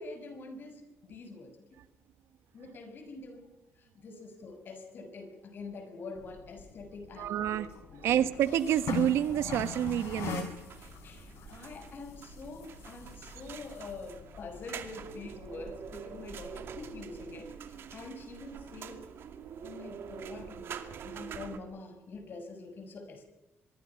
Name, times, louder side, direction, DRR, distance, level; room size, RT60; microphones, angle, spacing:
voice 1, 0.0-1.5 2.5-3.5 3.8-8.3 10.8-19.0 19.6-20.8 21.0-23.2, left 3 dB, 50° left, 7 dB, 6.5 m, -45 dB
sound 1, 6.2-17.4, left 8 dB, 75° left, 5.7 m, -44 dB
voice 2, 7.2-7.7 8.0-10.5, right 11 dB, 80° right, 12 dB, 1.3 m, -28 dB
sound 2, 8.7-21.6, right 7 dB, 60° right, 2.4 m, -46 dB
25.0 x 23.0 x 5.9 m, 1.0 s
cardioid pair, 110°, 4 cm